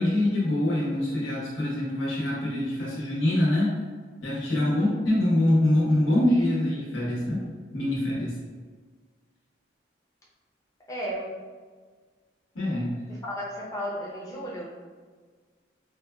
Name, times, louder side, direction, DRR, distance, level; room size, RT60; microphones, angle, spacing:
voice 1, 0.0-3.8 4.2-7.4 7.7-8.4 12.5-12.9, left 1 dB, 85° left, -7 dB, 1.0 m, -24 dB
voice 2, 4.6-4.9 10.9-11.4 13.2-14.7, equal, 15° left, -5 dB, 0.6 m, -34 dB
4.1 x 2.2 x 2.2 m, 1.5 s
head